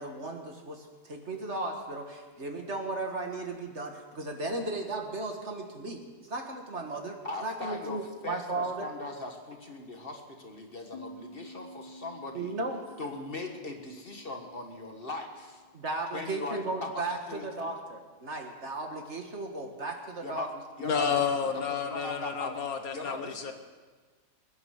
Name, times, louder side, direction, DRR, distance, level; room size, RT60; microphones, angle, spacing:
voice 1, 0.0-8.9 12.3-12.8 15.7-20.5, right 2 dB, 45° right, 3 dB, 1.8 m, -35 dB
voice 2, 7.2-12.5 13.0-15.6 16.1-17.7 20.2-20.5 20.8-21.2 21.7-22.7 22.9-23.5, left 2 dB, 35° left, 3 dB, 1.7 m, -40 dB
sound 1, 10.9-16.3, equal, 85° left, 2.1 m, -51 dB
voice 3, 20.8-23.5, left 6 dB, 65° left, 6 dB, 1.5 m, -30 dB
21.5 x 9.9 x 6.5 m, 1.4 s
omnidirectional pair, 1.7 m